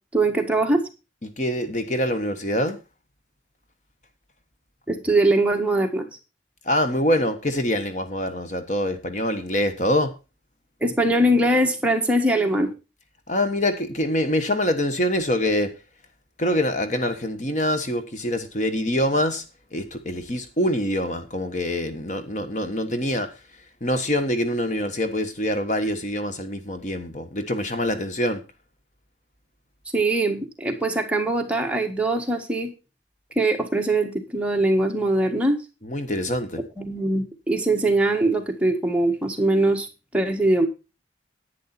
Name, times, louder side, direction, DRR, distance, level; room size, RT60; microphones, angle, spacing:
voice 1, 0.1-0.8 4.9-6.1 10.8-12.7 29.9-32.7 33.3-35.6 36.8-39.9 40.1-40.7, right 2 dB, 5° right, 1.6 m, -22 dB
voice 2, 1.2-2.8 6.6-10.1 13.3-15.7 16.4-19.4 19.7-23.4 23.8-28.4 35.8-36.6, left 1 dB, 40° left, 1.2 m, -25 dB
10.5 x 9.5 x 4.3 m
head